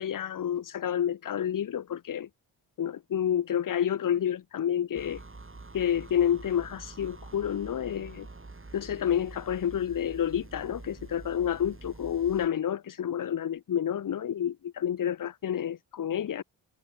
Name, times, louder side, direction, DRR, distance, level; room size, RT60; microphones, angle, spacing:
voice 1, 0.0-2.3 2.8-5.2 5.7-8.3 8.7-16.4, left 9 dB, 50° left, 0.7 m, -29 dB
sound 1, 5.0-12.5, right 3 dB, 30° right, 4.7 m, -46 dB
cardioid pair, 60°, 43 cm